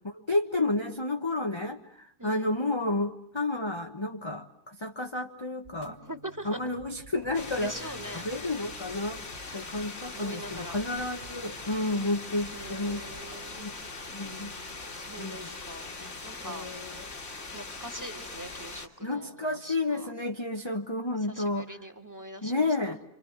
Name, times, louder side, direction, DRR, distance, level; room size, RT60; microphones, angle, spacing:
voice 1, 0.3-6.0 6.4-7.7 8.2-9.2 9.5-13.7 14.1-14.5 15.2-15.5 16.0-16.1 16.4-17.0 19.0-21.7 22.4-23.0, left 2 dB, 20° left, 3 dB, 1.2 m, -31 dB
voice 2, 2.2-2.6 5.9-6.6 7.6-8.3 10.0-10.8 12.5-13.7 14.9-15.9 16.2-16.7 17.5-20.1 21.2-23.0, right 1 dB, 10° right, 7 dB, 2.2 m, -43 dB
sound 1, 5.6-18.2, right 4 dB, 40° right, 1.4 m, -54 dB
sound 2, 7.3-18.9, left 3 dB, 50° left, 2.5 m, -41 dB
27.5 x 27.0 x 7.3 m, 0.70 s
omnidirectional pair, 1.6 m